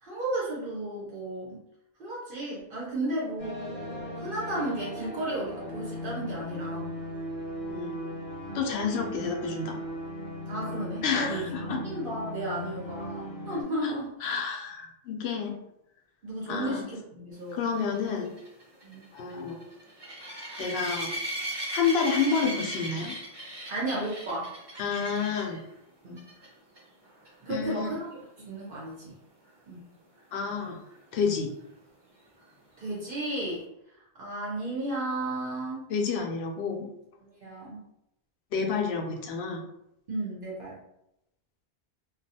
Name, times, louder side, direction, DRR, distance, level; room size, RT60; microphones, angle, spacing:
voice 1, 0.0-1.6 2.0-6.9 8.9-9.1 10.5-14.3 16.2-17.6 18.8-19.0 23.7-24.5 26.0-26.2 27.4-28.1 28.4-29.1 29.7-29.9 32.8-33.6 34.2-35.9 37.2-37.8 40.1-40.8, right 1 dB, 60° right, -5 dB, 0.8 m, -34 dB
sound 1, 3.4-13.6, equal, 25° left, 0.6 m, -37 dB
voice 2, 8.5-9.8 11.0-11.8 13.8-13.9 14.2-15.6 16.5-16.9 17.5-18.3 19.1-19.6 20.6-21.1 21.7-23.1 24.8-25.6 27.5-27.9 30.3-30.8 31.1-31.5 35.9-36.9 38.5-39.6, left 5 dB, 85° left, 2 dB, 0.8 m, -29 dB
sound 2, 17.6-25.6 26.2-26.5 26.8-26.9 27.2-27.3 30.9-31.0, right 1 dB, 30° right, 0.6 m, -37 dB
2.4 x 2.3 x 2.7 m, 0.81 s
omnidirectional pair, 1.0 m